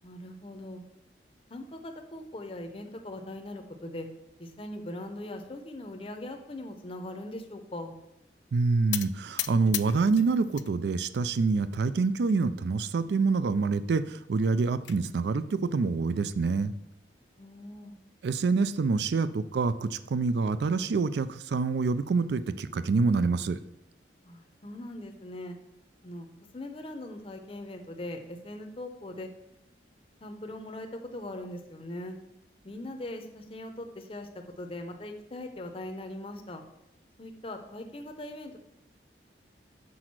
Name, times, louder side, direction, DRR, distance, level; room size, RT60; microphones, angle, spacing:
voice 1, 0.0-0.8 1.5-4.1 4.4-7.9 17.4-17.9 24.2-25.6 26.0-26.3 26.5-29.3 30.2-32.2 32.6-36.6 37.2-38.6, left 1 dB, 30° left, 5 dB, 0.7 m, -40 dB
voice 2, 8.5-16.7 18.2-23.6, right 4 dB, 65° right, 14 dB, 0.4 m, -26 dB
sound 1, 8.9-10.7 11.1-11.7 12.3-12.4 12.7-12.8 13.1-13.2 14.3-15.0, left 15 dB, 80° left, 0.4 m, -36 dB
6.2 x 4.9 x 6.0 m, 0.83 s
head